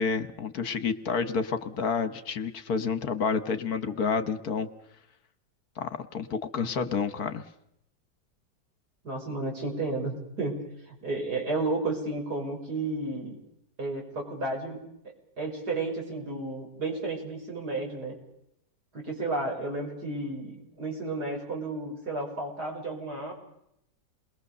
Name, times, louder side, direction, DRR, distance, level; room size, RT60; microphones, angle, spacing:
voice 1, 0.0-4.7 5.8-7.4, left 5 dB, 60° left, 12 dB, 1.6 m, -29 dB
voice 2, 9.0-10.6 10.9-13.4 13.8-14.8 15.4-18.2 18.9-23.3, right 2 dB, 60° right, 1 dB, 6.4 m, -32 dB
28.5 x 21.5 x 6.9 m, 0.78 s
omnidirectional pair, 2.0 m